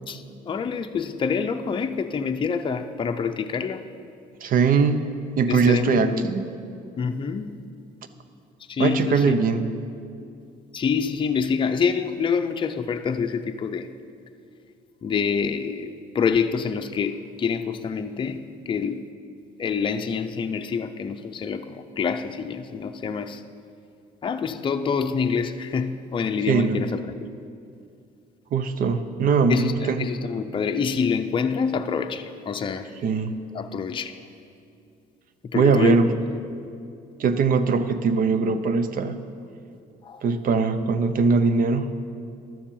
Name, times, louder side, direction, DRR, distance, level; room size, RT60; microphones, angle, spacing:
voice 1, 0.1-3.8 5.5-6.3 7.0-7.5 8.7-9.4 10.7-13.9 15.0-19.0 19.6-23.4 24.2-27.0 29.5-32.9 33.5-34.1 35.4-36.2 40.0-40.2, left 6 dB, 30° left, 6 dB, 0.6 m, -26 dB
voice 2, 4.4-5.0 5.4-6.5 8.8-9.6 26.5-26.8 28.5-30.1 33.0-33.4 35.5-36.1 37.2-39.2 40.2-41.9, right 5 dB, 55° right, 11 dB, 0.8 m, -21 dB
12.0 x 7.3 x 7.2 m, 2.5 s
cardioid pair, 110°, 17 cm